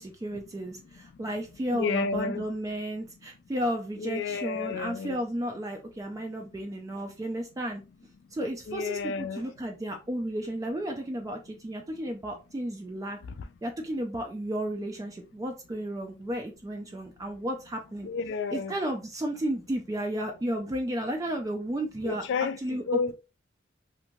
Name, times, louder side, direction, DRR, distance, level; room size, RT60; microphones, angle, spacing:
voice 1, 0.0-7.8 8.3-13.2 13.6-18.1 18.5-23.1, right 1 dB, 20° right, 0.3 m, -33 dB
voice 2, 1.7-2.4 4.0-5.2 8.7-9.4 18.0-18.7 22.0-22.6 22.9-23.1, left 5 dB, 65° left, 0.3 m, -30 dB
2.6 x 2.5 x 2.9 m
head